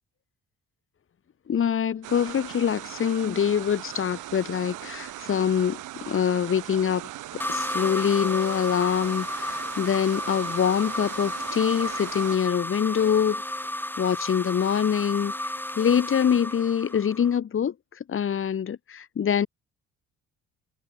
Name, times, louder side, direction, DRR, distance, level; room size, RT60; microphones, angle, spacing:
voice 1, 1.5-5.8 6.1-7.0 7.5-13.4 14.0-15.3 15.8-17.7 18.1-19.5, left 8 dB, 45° left, 1.3 m, -24 dB
sound 1, 2.0-12.4, right 15 dB, 85° right, 5.8 m, -39 dB
sound 2, 7.4-17.4, left 1 dB, 5° left, 7.5 m, -33 dB
cardioid pair, 90°, 30 cm